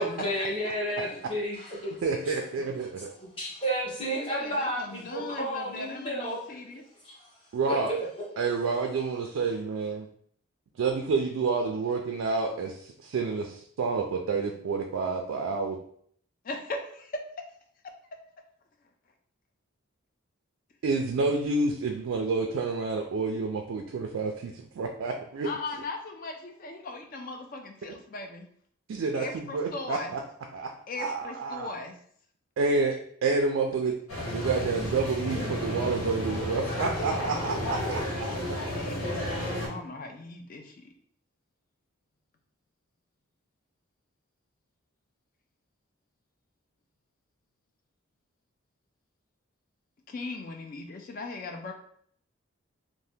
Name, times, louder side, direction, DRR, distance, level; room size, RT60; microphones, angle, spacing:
voice 1, 0.0-2.0 3.4-6.4 6.7-6.8 7.0-7.1 7.9-8.0, right 1 dB, 25° left, -5 dB, 0.9 m, -31 dB
voice 2, 2.0-3.1 7.5-7.9 8.4-10.1 10.8-15.8 20.8-25.8 28.9-30.2 30.5-30.7 31.0-31.8 32.6-33.0 33.2-33.9 34.3-38.0, right 4 dB, 75° right, 3 dB, 0.3 m, -29 dB
voice 3, 4.2-6.8 16.5-17.1 25.4-28.5 29.1-30.1 30.9-31.9 38.8-39.2 39.6-40.6 50.1-51.7, left 3 dB, 40° left, 4 dB, 0.3 m, -38 dB
sound 1, 34.1-39.7, left 1 dB, 85° left, 1.1 m, -32 dB
2.7 x 2.1 x 3.4 m, 0.63 s
head